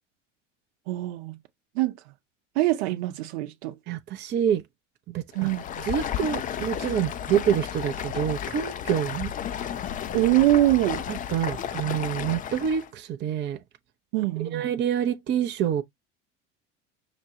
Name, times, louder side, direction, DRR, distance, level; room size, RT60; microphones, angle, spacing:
voice 1, 0.9-1.4 1.7-2.0 2.6-3.8 5.3-5.9 10.1-11.0 14.1-14.6, right 16 dB, 60° right, 0.8 m, -23 dB
voice 2, 3.9-4.6 5.1-5.5 5.8-9.3 11.3-13.6 14.5-15.8, right 9 dB, 30° right, 0.6 m, -27 dB
Stream, 5.3-12.9, left 9 dB, 25° left, 0.4 m, -33 dB
6.0 x 2.2 x 2.8 m
figure-of-eight pair, 70°, 38 cm